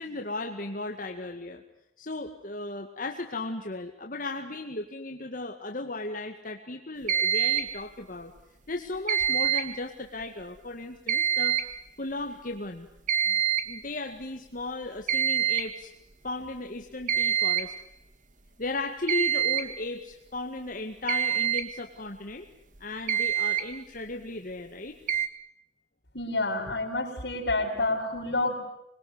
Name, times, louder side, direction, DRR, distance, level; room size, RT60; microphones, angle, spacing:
voice 1, 0.0-1.6 2.0-8.3 8.7-11.6 12.0-12.9 13.3-15.9 16.2-17.7 18.6-22.5 22.8-25.0 27.6-27.8, left 2 dB, 50° left, 3 dB, 1.9 m, -36 dB
sound 1, 7.1-7.8 9.1-9.8 11.1-11.8 13.1-13.8 15.1-15.8 17.1-17.8 19.1-19.8 21.1-21.7 22.7-22.8 23.1-23.7 25.1-25.3, right 9 dB, 45° right, 2.2 m, -26 dB
voice 2, 26.1-28.5, left 2 dB, 70° left, -7 dB, 5.8 m, -28 dB
26.5 x 22.0 x 9.6 m, 0.81 s
head